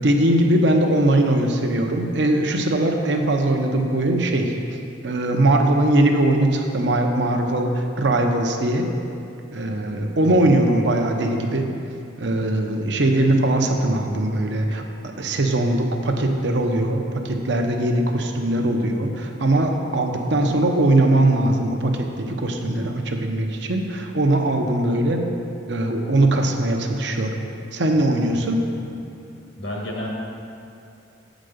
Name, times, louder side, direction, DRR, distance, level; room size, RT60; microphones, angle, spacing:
voice 1, 0.0-4.5 5.0-8.9 9.5-11.7 12.2-14.8 15.2-25.2 25.7-27.3 27.7-28.6, right 1 dB, 65° right, 3 dB, 0.8 m, -20 dB
voice 2, 10.2-10.5 28.3-28.8 29.6-30.1, left 1 dB, 80° left, -2 dB, 1.7 m, -33 dB
7.7 x 5.1 x 6.5 m, 2.6 s
head